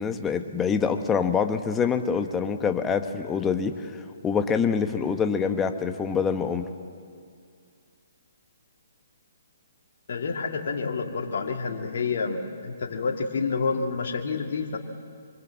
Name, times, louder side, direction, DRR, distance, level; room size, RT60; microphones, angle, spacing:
voice 1, 0.0-3.9 4.2-6.7, left 6 dB, 15° left, 7 dB, 1.4 m, -25 dB
voice 2, 10.1-14.8, left 4 dB, 60° left, 1 dB, 2.1 m, -28 dB
25.5 x 24.5 x 7.6 m, 2.2 s
figure-of-eight pair, 135°, 0 cm